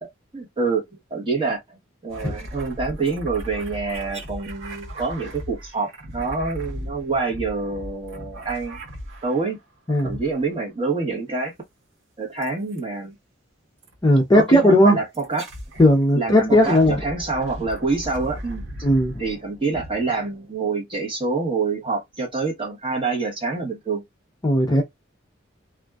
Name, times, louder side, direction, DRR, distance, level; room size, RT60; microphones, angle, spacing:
voice 1, 0.3-8.8 9.2-9.6 10.0-11.5 12.2-13.1 14.3-15.5 16.1-18.6 19.2-24.0, right 4 dB, 25° right, 1.0 m, -26 dB
sound 1, 2.1-9.5 9.9-10.7 12.4-12.8 13.8-14.0 15.1-15.9 16.4-20.7, equal, 75° right, 1.0 m, -37 dB
voice 2, 9.9-10.2 14.0-15.0 15.8-17.0 18.8-19.2 24.4-24.8, equal, 20° left, 0.5 m, -16 dB
2.5 x 2.2 x 2.2 m
head